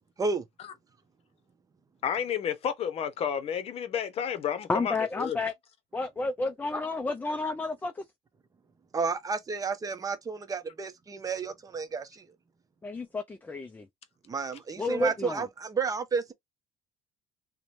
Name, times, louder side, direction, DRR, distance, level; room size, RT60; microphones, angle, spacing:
voice 1, 2.0-5.4, left 8 dB, 50° left, 0.8 m, -31 dB
voice 2, 4.7-5.5 5.9-8.0 12.8-13.9 14.8-15.5, left 2 dB, 15° left, 0.4 m, -31 dB
voice 3, 8.9-12.3 14.3-16.3, right 4 dB, 25° right, 0.7 m, -31 dB
2.9 x 2.2 x 2.5 m
supercardioid pair, 95°, 13 cm